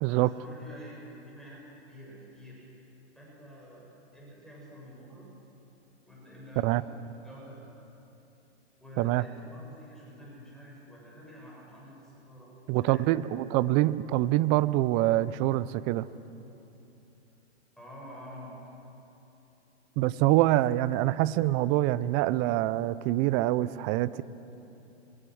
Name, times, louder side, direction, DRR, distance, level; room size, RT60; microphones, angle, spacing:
voice 1, 0.1-2.7 3.1-5.3 6.1-7.6 8.8-13.3 17.8-18.5, equal, ahead, -6 dB, 7.2 m, -49 dB
voice 2, 12.7-16.1 20.0-24.2, right 16 dB, 20° right, 17 dB, 0.4 m, -25 dB
26.5 x 25.0 x 6.3 m, 3.0 s
hypercardioid pair, 130°, 35 cm